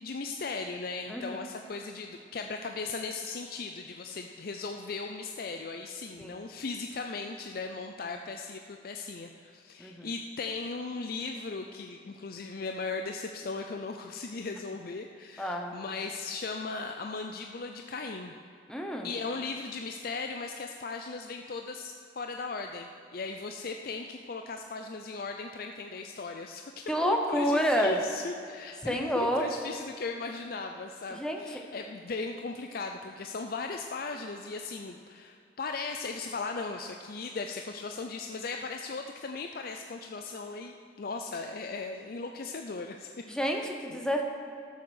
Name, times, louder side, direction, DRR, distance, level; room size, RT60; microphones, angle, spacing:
voice 1, 0.0-18.3 19.0-43.1 43.5-44.0, left 4 dB, 55° left, 4 dB, 0.5 m, -37 dB
voice 2, 1.1-1.4 6.2-6.4 9.8-10.1 15.4-15.7 18.7-19.1 26.9-28.0 28.8-29.5 31.1-31.4 43.3-44.2, equal, 5° left, 2 dB, 1.0 m, -29 dB
13.5 x 7.3 x 6.4 m, 2.4 s
head